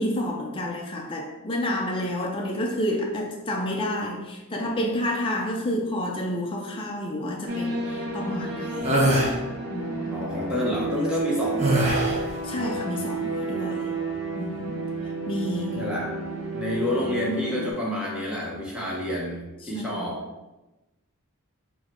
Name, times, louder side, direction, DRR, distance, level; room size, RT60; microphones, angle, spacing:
voice 1, 0.0-9.1 9.7-10.2 12.4-13.9 14.4-14.8 15.3-15.9 19.6-20.1, left 1 dB, 25° left, -1 dB, 0.4 m, -30 dB
sound 1, 7.5-17.7, right 3 dB, 75° right, 0.7 m, -31 dB
sound 2, 8.8-9.3 11.6-12.3, right 1 dB, 30° right, 0.7 m, -22 dB
voice 2, 10.1-12.1 15.7-16.1 16.5-20.2, left 1 dB, 5° right, -5 dB, 0.9 m, -29 dB
4.7 x 2.1 x 4.3 m, 1.0 s
head